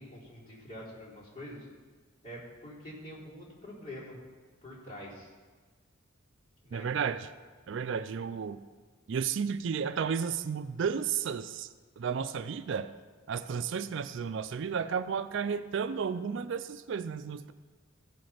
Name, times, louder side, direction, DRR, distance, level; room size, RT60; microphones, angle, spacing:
voice 1, 0.0-1.7 2.2-4.2 4.6-5.3 6.6-6.9, equal, 40° left, -8 dB, 4.0 m, -45 dB
voice 2, 6.7-7.3 7.7-8.6 9.1-12.9 13.3-17.5, right 6 dB, 60° right, 12 dB, 0.4 m, -33 dB
15.5 x 5.4 x 5.8 m, 1.4 s
head